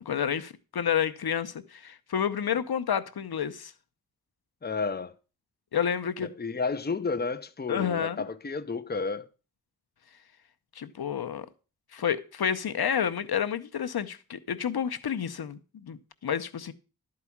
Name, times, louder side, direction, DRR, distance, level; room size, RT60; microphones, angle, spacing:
voice 1, 0.0-3.7 5.7-6.3 7.7-8.2 10.8-11.5 11.9-16.7, left 8 dB, 75° left, 0.8 m, -29 dB
voice 2, 4.6-5.1 6.2-9.3, left 4 dB, 25° left, 0.7 m, -31 dB
12.0 x 4.8 x 7.1 m
wide cardioid pair, 85°, 37 cm